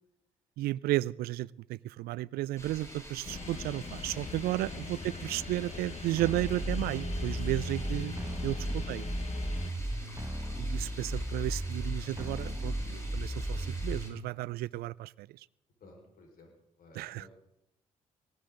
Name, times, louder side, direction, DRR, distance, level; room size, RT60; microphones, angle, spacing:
voice 1, 0.6-8.1 8.4-9.0 10.6-15.3 16.9-17.3, right 16 dB, 65° right, 23 dB, 0.4 m, -33 dB
sound 1, 2.6-14.1, equal, 15° left, 7.8 m, -48 dB
sound 2, 3.2-9.7, left 4 dB, 40° left, 1.2 m, -41 dB
sound 3, 6.2-14.2, right 1 dB, 15° right, 1.8 m, -35 dB
voice 2, 15.8-16.5 16.8-17.3, left 2 dB, 60° left, 1 dB, 4.9 m, -56 dB
19.0 x 16.0 x 3.9 m, 0.82 s
hypercardioid pair, 50°, 17 cm